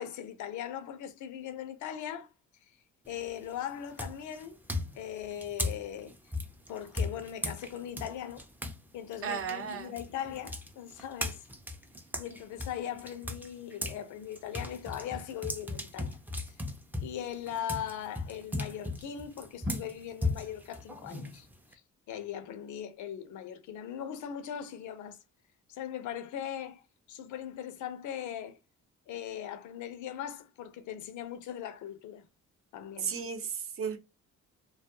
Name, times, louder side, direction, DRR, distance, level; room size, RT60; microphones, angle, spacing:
voice 1, 0.0-2.3 3.1-4.6 4.9-6.2 6.7-8.4 8.9-11.5 12.2-16.5 17.0-21.5 22.1-25.2 25.7-28.6 29.1-32.3 32.7-33.1, left 10 dB, 75° left, 0.6 m, -39 dB
sound 1, 3.1-3.4 4.0-8.8 9.1-14.0 14.3-21.7, left 2 dB, 5° right, 0.5 m, -37 dB
voice 2, 9.2-9.9 33.0-34.0, right 7 dB, 45° right, 0.7 m, -34 dB
2.3 x 2.1 x 2.7 m
cardioid pair, 90°, 30 cm